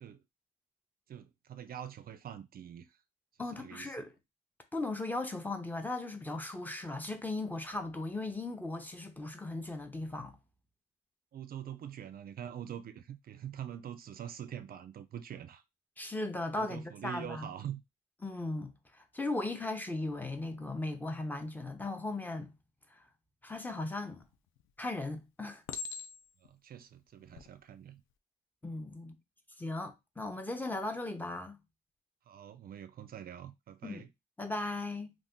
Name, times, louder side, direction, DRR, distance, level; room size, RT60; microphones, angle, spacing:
voice 1, 1.1-2.9 3.4-4.0 11.3-15.6 16.6-17.8 26.4-28.0 32.3-34.1, right 9 dB, 50° right, 0.4 m, -44 dB
voice 2, 3.4-4.1 4.7-10.4 16.0-17.5 18.2-22.5 23.4-24.2 24.8-25.6 28.6-29.2 29.6-31.6 33.8-34.0 34.4-35.1, left 2 dB, 10° left, 0.6 m, -37 dB
Chink clink, 24.2-24.7 25.7-26.5 27.2-27.5, left 6 dB, 85° left, 0.4 m, -42 dB
2.6 x 2.4 x 3.6 m
cardioid pair, 90°, 20 cm